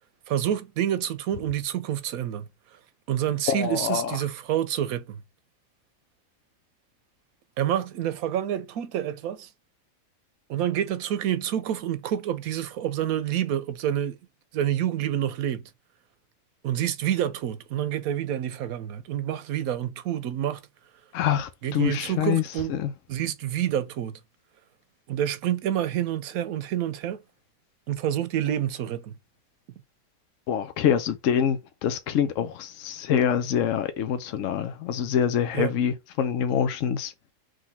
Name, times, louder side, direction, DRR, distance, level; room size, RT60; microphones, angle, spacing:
voice 1, 0.3-2.8 3.1-5.2 7.6-9.5 10.5-14.2 14.5-15.6 16.6-20.6 21.6-22.7 23.1-24.2 25.1-27.2 27.9-29.1 35.5-35.7, right 11 dB, 90° right, 1.2 m, -28 dB
voice 2, 3.5-4.2 21.1-22.4 22.7-22.9 30.5-37.1, left 8 dB, 70° left, 1.0 m, -25 dB
3.9 x 3.2 x 4.1 m
omnidirectional pair, 1.5 m